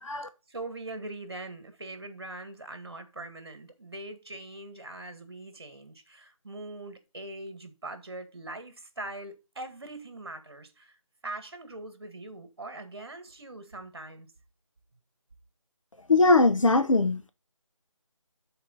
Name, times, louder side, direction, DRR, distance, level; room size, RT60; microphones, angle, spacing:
voice 1, 0.5-11.0 11.2-14.3, right 2 dB, 45° right, 1.7 m, -42 dB
voice 2, 16.1-17.3, left 3 dB, 65° left, 0.8 m, -21 dB
11.0 x 4.7 x 3.9 m
figure-of-eight pair, 175°, 18 cm